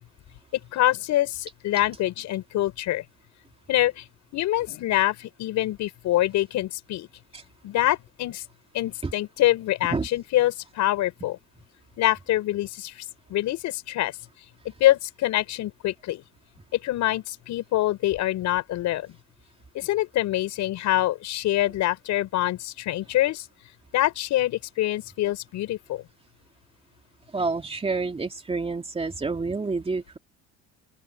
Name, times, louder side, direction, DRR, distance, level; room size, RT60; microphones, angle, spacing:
voice 1, 0.5-3.0 3.7-4.0 4.3-7.1 7.6-8.4 8.7-11.4 12.0-13.0 13.3-14.1 14.6-16.2 16.7-19.1 19.7-23.5 23.9-26.0, left 15 dB, 65° left, 6.2 m, -25 dB
voice 2, 27.3-30.2, right 3 dB, 20° right, 2.8 m, -28 dB
open air
cardioid pair, 110°, 31 cm